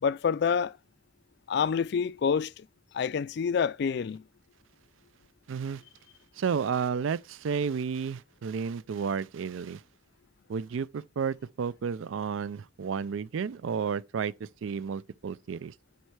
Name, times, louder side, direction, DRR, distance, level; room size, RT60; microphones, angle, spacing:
voice 1, 0.0-0.8 1.5-2.7 2.9-4.2, left 6 dB, 55° left, 0.3 m, -27 dB
voice 2, 5.5-5.8 6.4-9.8 10.5-15.7, right 6 dB, 75° right, 0.4 m, -32 dB
9.4 x 4.4 x 4.8 m
head